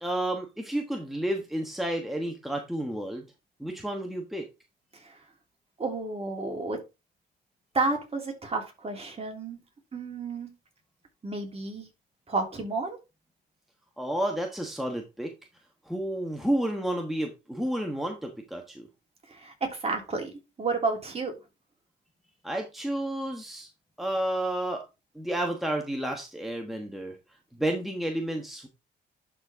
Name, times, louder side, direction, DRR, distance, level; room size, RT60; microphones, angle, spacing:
voice 1, 0.0-3.2 3.6-4.5 14.0-15.3 15.9-18.9 22.4-23.7 24.0-24.8 25.1-27.2 27.6-28.7, right 1 dB, ahead, 2 dB, 1.3 m, -31 dB
voice 2, 5.8-6.8 7.7-9.6 9.9-10.5 11.2-11.9 12.3-13.0 19.3-20.3 20.6-21.3, right 3 dB, 30° right, 2 dB, 3.1 m, -31 dB
11.5 x 4.5 x 3.6 m, 0.26 s
cardioid pair, 90°, 20 cm